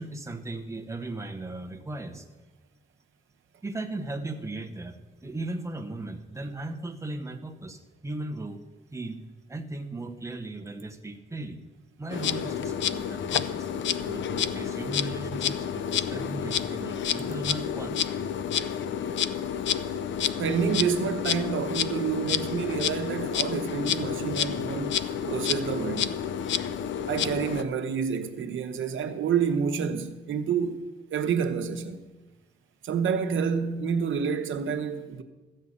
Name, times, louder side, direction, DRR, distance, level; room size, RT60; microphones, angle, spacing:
voice 1, 0.0-2.3 3.6-8.6 8.9-11.6 12.0-13.7 14.0-18.0, right 2 dB, 15° right, 1.0 m, -37 dB
Insect, 12.1-27.6, left 8 dB, 70° left, 0.5 m, -29 dB
voice 2, 20.4-25.0 25.3-26.1 27.1-32.0 32.8-35.2, right 6 dB, 85° right, 1.0 m, -28 dB
14.0 x 5.6 x 8.6 m
wide cardioid pair, 130°, 20 cm